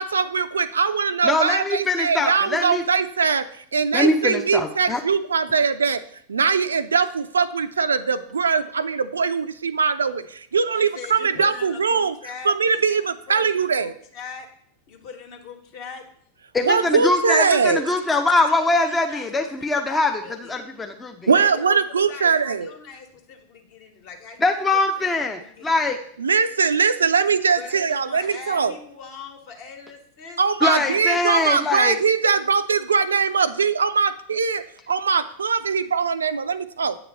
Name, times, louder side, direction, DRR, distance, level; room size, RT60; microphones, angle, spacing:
voice 1, 0.0-6.0 6.3-12.2 12.4-13.9 16.6-17.8 21.3-22.7 26.2-28.7 30.4-37.0, right 5 dB, 70° right, 12 dB, 0.3 m, -21 dB
voice 2, 1.2-2.9 3.9-5.0 16.5-21.3 24.4-26.0 30.6-32.0, left 2 dB, 10° left, 3 dB, 0.5 m, -22 dB
voice 3, 10.7-13.0 13.3-14.5 14.9-16.0 18.2-19.3 19.6-19.7 20.2-20.5 21.3-21.8 22.1-24.6 25.0-25.1 25.3-25.9 27.5-31.1, left 5 dB, 45° left, 3 dB, 1.3 m, -40 dB
8.4 x 3.0 x 6.1 m, 0.64 s
figure-of-eight pair, 90°, 0 cm